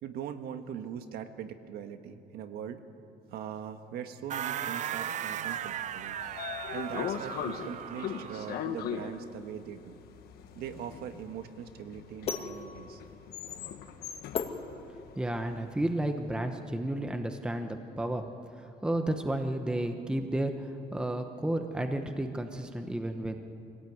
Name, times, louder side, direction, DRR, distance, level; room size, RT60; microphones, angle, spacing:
voice 1, 0.0-2.8 3.3-6.2 6.7-10.0 10.5-13.0, right 8 dB, 80° right, 7 dB, 1.5 m, -41 dB
sound 1, 4.3-8.7, right 10 dB, 50° right, 0.6 m, -37 dB
Train / Sliding door, 5.8-15.9, left 8 dB, 80° left, 1.5 m, -40 dB
sound 2, 10.2-15.4, left 5 dB, 40° left, 1.5 m, -39 dB
voice 2, 15.2-18.3 18.5-23.4, right 1 dB, 5° right, 6 dB, 1.0 m, -32 dB
24.5 x 17.5 x 9.5 m, 2.7 s
cardioid pair, 170°, 16 cm